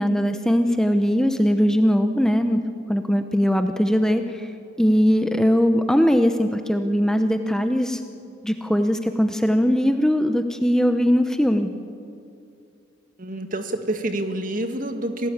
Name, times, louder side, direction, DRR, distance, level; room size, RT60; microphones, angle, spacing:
voice 1, 0.0-2.6 2.9-4.5 4.8-8.0 8.4-11.7, equal, 5° left, 7 dB, 0.8 m, -20 dB
voice 2, 13.2-15.3, right 1 dB, 45° right, 6 dB, 1.8 m, -27 dB
26.5 x 17.5 x 8.7 m, 2.5 s
head